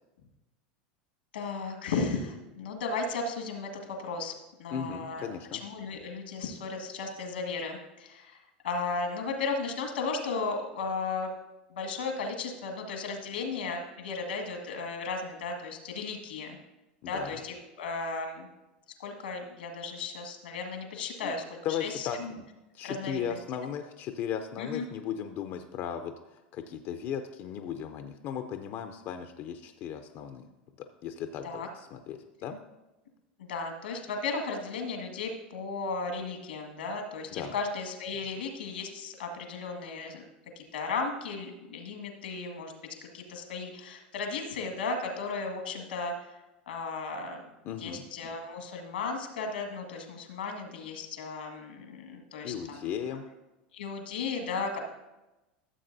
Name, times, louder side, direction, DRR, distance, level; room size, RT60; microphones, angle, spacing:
voice 1, 1.3-4.3 4.6-5.3 5.6-8.4 8.6-11.3 11.7-16.6 17.1-18.5 19.0-22.4 22.8-23.4 24.6-24.9 31.4-31.7 33.4-40.2 40.6-42.7 43.1-46.4 46.7-47.5 47.8-52.9 53.7-54.8, left 4 dB, 85° left, 3 dB, 1.7 m, -35 dB
voice 2, 4.7-5.6 17.0-17.4 21.2-21.3 21.6-22.4 22.7-30.5 31.0-32.6 37.3-37.5 47.6-48.0 52.4-53.2, left 8 dB, 50° left, 7 dB, 0.6 m, -36 dB
14.0 x 7.3 x 2.7 m, 1.0 s
hypercardioid pair, 95°, 5 cm